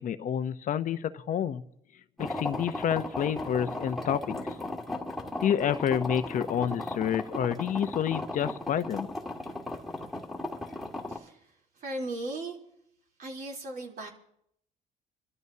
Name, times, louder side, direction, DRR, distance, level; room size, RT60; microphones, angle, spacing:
voice 1, 0.0-1.6 2.2-4.5 5.4-9.1, left 9 dB, 50° left, 11 dB, 0.7 m, -29 dB
sound 1, 2.2-11.2, left 2 dB, ahead, 1.7 m, -36 dB
voice 2, 11.1-11.5 11.8-12.6 13.2-14.1, right 2 dB, 55° right, 0 dB, 3.3 m, -37 dB
28.0 x 12.5 x 2.7 m, 0.71 s
cardioid pair, 110°, 17 cm